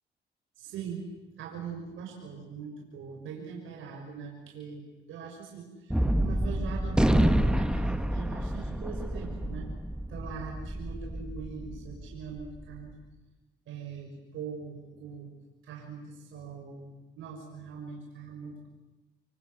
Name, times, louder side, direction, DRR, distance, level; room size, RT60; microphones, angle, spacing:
voice 1, 0.6-1.1 1.4-9.7 10.1-12.9 13.7-15.3 15.6-18.7, right 6 dB, 85° right, 0 dB, 6.3 m, -42 dB
Gunshot gunfire, 5.9-12.5, right 1 dB, 5° right, 1.9 m, -28 dB
28.0 x 24.5 x 8.0 m, 1.1 s
cardioid pair, 90°, 20 cm